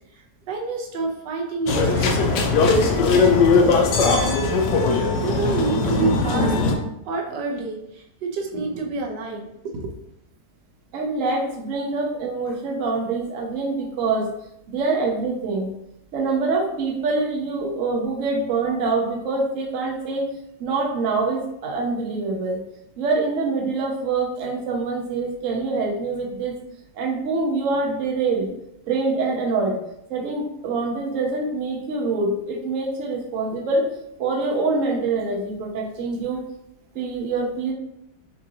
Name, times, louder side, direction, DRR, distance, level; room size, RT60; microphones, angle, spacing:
voice 1, 0.1-4.6 4.9-6.8 7.0-9.9, right 4 dB, 85° right, 1 dB, 1.3 m, -29 dB
sound 1, 1.7-6.7, left 4 dB, 85° left, 1.3 m, -19 dB
voice 2, 10.9-14.3 14.7-15.7 16.1-20.3 20.6-22.6 23.0-26.5 26.9-28.5 28.9-29.8 30.1-33.8 34.2-36.4 36.9-37.7, right 3 dB, 55° right, -1 dB, 1.1 m, -25 dB
6.2 x 2.7 x 2.7 m, 0.82 s
omnidirectional pair, 1.8 m